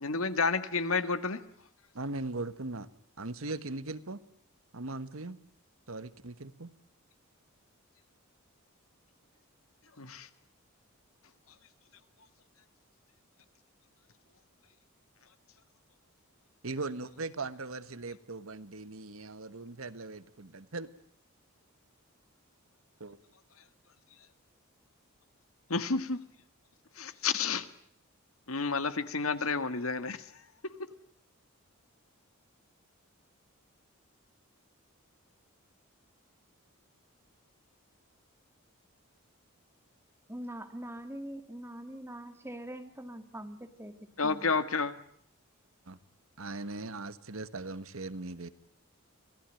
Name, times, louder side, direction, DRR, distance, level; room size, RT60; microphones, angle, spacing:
voice 1, 0.0-1.4 10.0-10.3 25.7-26.2 27.0-27.7 28.5-30.2 44.2-44.9, left 4 dB, 75° left, 11 dB, 1.8 m, -30 dB
voice 2, 1.9-2.9 3.2-4.2 4.7-5.4 5.9-6.7 16.6-20.9 23.0-23.2 45.9-46.0 46.4-48.5, right 3 dB, 70° right, 14 dB, 1.4 m, -39 dB
voice 3, 40.3-44.5, right 1 dB, 10° right, 7 dB, 2.4 m, -43 dB
26.5 x 18.5 x 9.1 m, 0.65 s
head